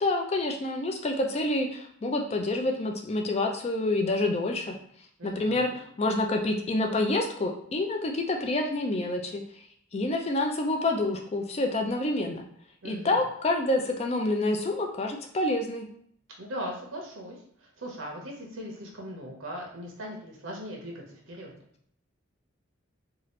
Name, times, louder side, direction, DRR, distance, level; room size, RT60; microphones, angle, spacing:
voice 1, 0.0-4.8 5.2-9.4 9.9-12.5 12.8-15.9, left 2 dB, 30° left, 3 dB, 0.3 m, -28 dB
voice 2, 5.2-5.8 12.8-13.2 16.4-21.5, equal, 85° right, -1 dB, 0.8 m, -39 dB
2.7 x 2.4 x 3.1 m, 0.65 s
head